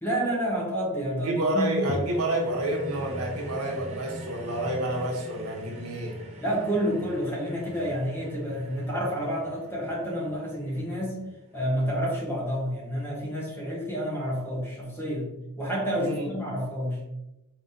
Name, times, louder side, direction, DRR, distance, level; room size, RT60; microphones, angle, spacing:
voice 1, 0.0-1.8 6.4-11.2 11.5-17.1, equal, 10° left, -4 dB, 1.1 m, -29 dB
voice 2, 1.1-6.1 16.0-16.3, right 1 dB, 90° right, 0 dB, 1.1 m, -29 dB
sound 1, 1.9-12.4 13.0-13.1, right 1 dB, 30° right, 0.6 m, -41 dB
4.1 x 3.3 x 2.7 m, 0.95 s
head